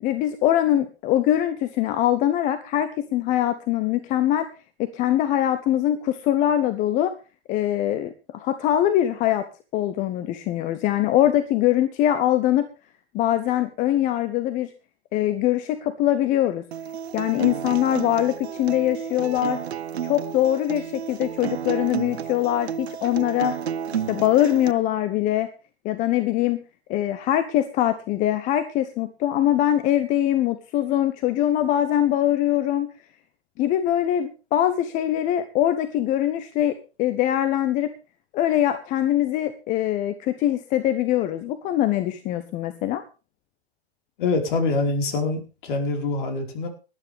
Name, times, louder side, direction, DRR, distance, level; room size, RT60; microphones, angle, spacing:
voice 1, 0.0-4.5 4.8-7.1 7.5-9.5 9.7-12.7 13.1-14.7 15.1-16.6 17.1-19.6 20.0-23.5 23.9-25.5 25.8-26.6 26.9-32.9 33.6-37.9 38.3-43.0, left 12 dB, 25° left, 10 dB, 1.1 m, -22 dB
Acoustic guitar, 16.7-24.7, right 8 dB, 70° right, 0.7 m, -31 dB
voice 2, 44.2-46.7, left 3 dB, 50° left, 3 dB, 4.8 m, -25 dB
19.0 x 12.0 x 3.5 m, 0.33 s
figure-of-eight pair, 120°, 33 cm